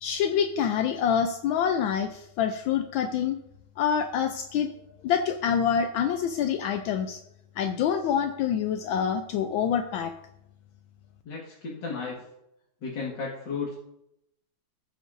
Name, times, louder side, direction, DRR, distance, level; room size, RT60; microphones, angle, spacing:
voice 1, 0.0-3.4 3.8-4.7 5.0-7.2 7.6-10.1, left 8 dB, 75° left, 7 dB, 1.3 m, -26 dB
voice 2, 11.2-12.2 12.8-13.8, left 4 dB, 60° left, -5 dB, 2.3 m, -34 dB
15.0 x 7.9 x 2.6 m, 0.81 s
omnidirectional pair, 2.3 m